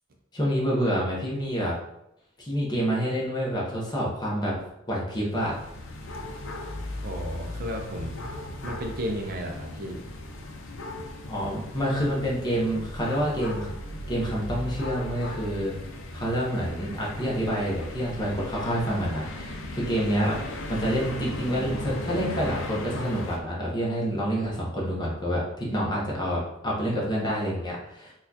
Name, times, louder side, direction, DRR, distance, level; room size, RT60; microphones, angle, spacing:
voice 1, 0.3-1.7 2.4-4.6 4.9-5.5 11.3-13.7 14.1-15.8 16.1-28.1, equal, 20° left, -4 dB, 0.8 m, -28 dB
sound 1, 5.3-23.4, left 1 dB, 60° left, 0.5 m, -37 dB
voice 2, 7.0-8.2 8.6-10.0, equal, 45° right, 2 dB, 0.4 m, -33 dB
4.3 x 2.3 x 2.7 m, 0.83 s
head